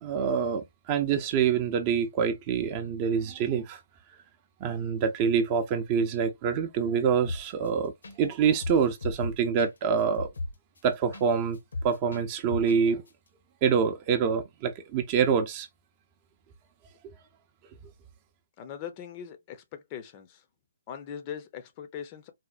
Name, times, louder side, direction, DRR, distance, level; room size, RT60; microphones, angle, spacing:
voice 1, 0.0-3.8 4.6-7.9 8.2-10.3 10.8-11.6 11.8-13.0 13.6-15.7, right 6 dB, 25° right, 0.6 m, -26 dB
sound 1, 7.2-7.7 8.0-8.2 8.4-11.3 11.5-12.8 13.1-13.2, left 2 dB, 65° left, 0.9 m, -35 dB
voice 2, 18.6-20.4 20.9-22.3, left 8 dB, 25° left, 0.6 m, -40 dB
4.2 x 2.1 x 2.3 m
figure-of-eight pair, 145°, 0 cm